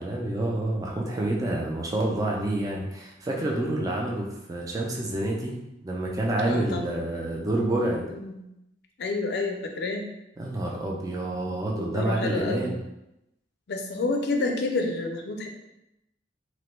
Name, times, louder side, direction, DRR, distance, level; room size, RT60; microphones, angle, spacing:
voice 1, 0.0-5.6 5.8-8.0 10.4-12.8, right 1 dB, 20° right, -1 dB, 0.3 m, -28 dB
voice 2, 6.4-6.8 8.1-8.4 9.0-10.0 11.7-12.7 13.7-15.5, left 3 dB, 60° left, 3 dB, 0.4 m, -29 dB
2.9 x 2.1 x 3.1 m, 0.88 s
head